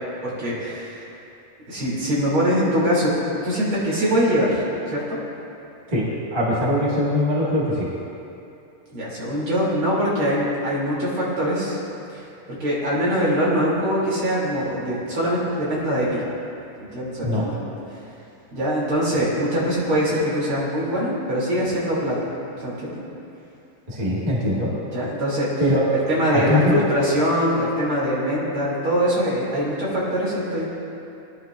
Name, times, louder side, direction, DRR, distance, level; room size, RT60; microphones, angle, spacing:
voice 1, 0.2-1.0 1.7-3.1 3.4-4.6 4.9-5.2 8.9-11.8 12.1-12.2 12.5-16.2 16.9-17.6 18.5-22.2 22.6-23.0 24.9-25.5 25.9-30.7, equal, 40° right, -7 dB, 3.7 m, -23 dB
voice 2, 5.9-7.9 17.2-17.4 23.9-24.7 25.6-25.8 26.3-26.8, left 1 dB, 20° right, -6 dB, 1.1 m, -21 dB
21.0 x 11.0 x 2.6 m, 2.8 s
omnidirectional pair, 3.8 m